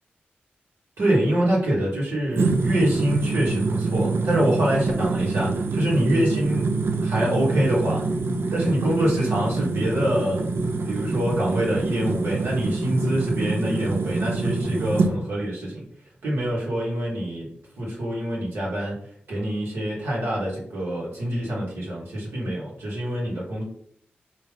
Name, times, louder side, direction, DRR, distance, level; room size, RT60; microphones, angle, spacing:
voice 1, 1.0-6.7 7.0-8.0 8.5-10.5 10.8-15.8 16.2-17.5 17.8-19.0 19.3-23.6, right 1 dB, 85° right, -5 dB, 1.4 m, -25 dB
sound 1, 2.3-15.1, right 3 dB, 70° right, 0.5 m, -25 dB
3.6 x 2.7 x 3.4 m, 0.65 s
cardioid pair, 45°, 4 cm